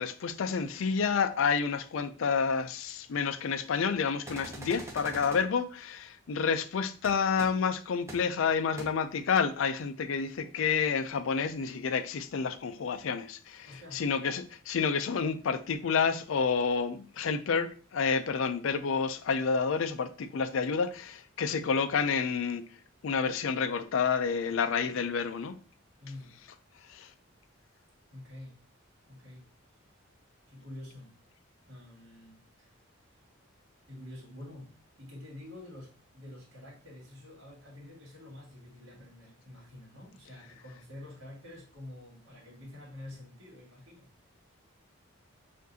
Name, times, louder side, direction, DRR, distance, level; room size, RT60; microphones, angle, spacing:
voice 1, 0.0-22.6 23.0-25.6 26.9-27.1, left 5 dB, 70° left, 0.4 m, -29 dB
sound 1, 4.3-5.4 7.0-7.1 7.4-7.5 8.1-8.2 8.8-8.9, right 1 dB, 15° right, 0.6 m, -42 dB
voice 2, 13.7-14.0 26.0-26.3 28.1-28.6 29.1-29.5 30.5-31.1 31.7-32.8 33.1-33.2 33.9-44.1, left 1 dB, 65° right, 2.0 m, -48 dB
6.0 x 2.6 x 2.7 m
head